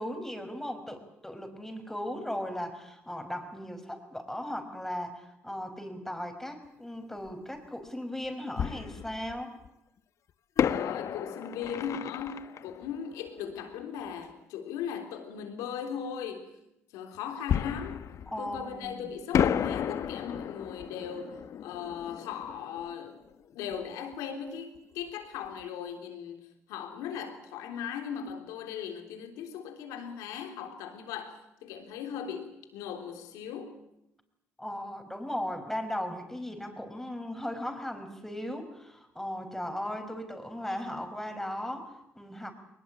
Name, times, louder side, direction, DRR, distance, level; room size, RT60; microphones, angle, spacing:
voice 1, 0.0-9.6 18.3-19.1 34.6-42.5, left 1 dB, 5° left, 7 dB, 5.3 m, -37 dB
Fireworks, 7.3-7.4 8.6-9.7 10.6-14.0 17.5-18.9 19.3-23.9 24.1-24.2 24.8-25.0, left 9 dB, 65° left, 0.9 m, -32 dB
voice 2, 10.7-16.5 16.9-18.0 18.4-23.2 23.5-33.8, left 8 dB, 90° left, 5 dB, 3.5 m, -38 dB
22.0 x 20.5 x 8.9 m, 0.84 s
supercardioid pair, 70°, 6 cm